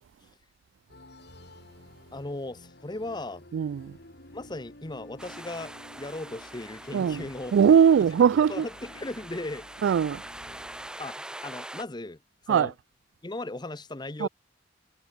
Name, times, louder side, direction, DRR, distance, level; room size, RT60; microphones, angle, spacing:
sound 1, 0.9-10.9, left 1 dB, 60° left, 3.3 m, -51 dB
voice 1, 2.1-3.4 4.3-7.5 8.5-9.7 11.0-12.2 12.5-12.7 13.2-14.3, left 2 dB, 25° left, 0.9 m, -37 dB
voice 2, 3.5-3.9 6.9-7.2 7.5-8.7 9.8-10.2 12.5-12.7 14.2-14.3, right 7 dB, 75° right, 0.3 m, -20 dB
sound 2, 5.2-11.8, right 1 dB, 5° right, 0.5 m, -44 dB
head